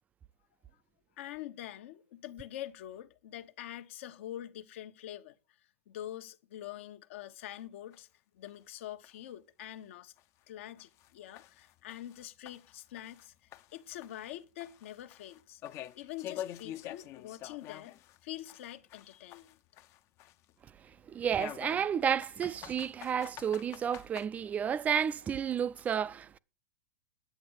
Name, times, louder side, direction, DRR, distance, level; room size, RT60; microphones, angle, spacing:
voice 1, 1.2-5.4 5.9-8.1 8.3-10.1 10.5-15.6 15.9-17.9 18.2-19.6, left 13 dB, 60° left, 1.1 m, -45 dB
sound 1, 7.4-7.5 7.9-8.0 8.5-8.6 9.0-9.1 9.6-9.7 10.2-10.3 10.8-13.3 13.5-18.2 18.5-20.5 21.4-24.3, left 12 dB, 35° left, 0.7 m, -46 dB
voice 2, 21.1-26.4, right 8 dB, 20° right, 0.5 m, -31 dB
10.0 x 7.9 x 6.4 m
hypercardioid pair, 125°, 8 cm